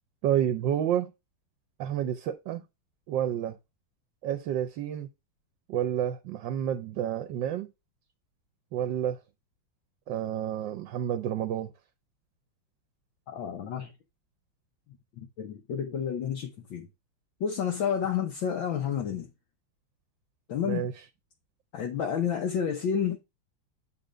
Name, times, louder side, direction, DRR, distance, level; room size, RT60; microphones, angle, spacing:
voice 1, 0.2-1.1 1.8-2.6 3.1-3.6 4.2-5.1 5.7-7.7 8.7-9.2 10.1-11.7 20.7-20.9, right 10 dB, 70° right, 1.3 m, -29 dB
voice 2, 13.3-13.9 15.2-16.9 17.4-19.3 20.5-20.9 21.7-23.2, left 8 dB, 65° left, 1.6 m, -30 dB
8.0 x 4.3 x 5.0 m
omnidirectional pair, 2.4 m